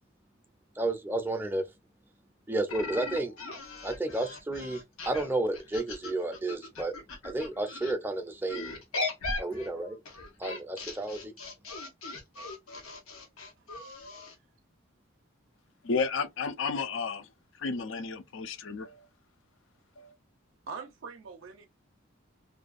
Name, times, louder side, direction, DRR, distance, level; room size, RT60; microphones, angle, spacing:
voice 1, 0.8-1.6 2.5-3.3 3.8-4.8 5.1-6.9 7.2-8.7 9.4-10.0 10.4-11.3, right 2 dB, 10° right, 0.4 m, -31 dB
sound 1, 2.7-7.9 8.5-14.4, left 3 dB, 90° left, 0.9 m, -39 dB
voice 2, 15.8-17.3 17.6-19.1 20.0-20.1, left 4 dB, 65° left, 0.5 m, -32 dB
voice 3, 20.7-21.7, right 5 dB, 65° right, 0.5 m, -42 dB
2.5 x 2.2 x 2.4 m
head